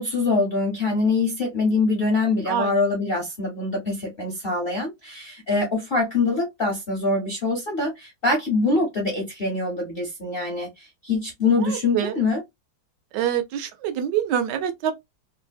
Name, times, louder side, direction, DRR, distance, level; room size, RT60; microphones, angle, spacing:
voice 1, 0.0-12.4, left 3 dB, 55° left, 0.6 m, -24 dB
voice 2, 11.6-12.1 13.1-14.9, right 9 dB, 75° right, 1.1 m, -25 dB
3.2 x 2.0 x 2.4 m
omnidirectional pair, 2.0 m